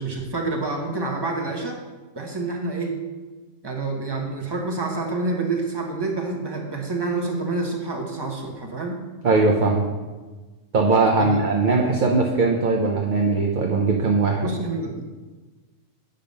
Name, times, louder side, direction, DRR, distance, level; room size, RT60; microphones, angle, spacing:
voice 1, 0.0-1.8 2.1-3.0 3.6-9.0 11.2-11.4 14.4-15.0, right 3 dB, 20° right, 1 dB, 1.1 m, -28 dB
voice 2, 9.2-9.9 10.7-14.5, right 3 dB, 45° right, 0 dB, 0.8 m, -20 dB
8.8 x 5.4 x 5.3 m, 1.3 s
omnidirectional pair, 1.3 m